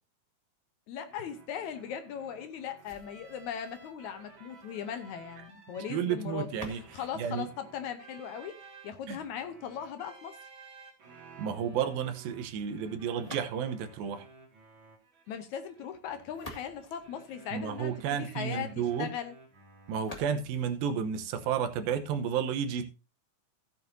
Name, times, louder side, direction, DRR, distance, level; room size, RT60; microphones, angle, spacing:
voice 1, 0.9-8.6 8.8-10.4 15.3-17.9 18.2-19.3, left 8 dB, 75° left, 1.9 m, -39 dB
sound 1, 1.1-20.0, right 4 dB, 40° right, 2.2 m, -55 dB
sound 2, 2.8-8.7 13.1-14.0 16.0-18.0 20.0-22.0, left 1 dB, 35° left, 0.5 m, -51 dB
voice 2, 5.9-7.5 9.1-9.2 11.4-14.3 17.5-19.1 19.9-22.9, right 8 dB, 85° right, 2.9 m, -32 dB
15.5 x 8.5 x 2.7 m
omnidirectional pair, 4.1 m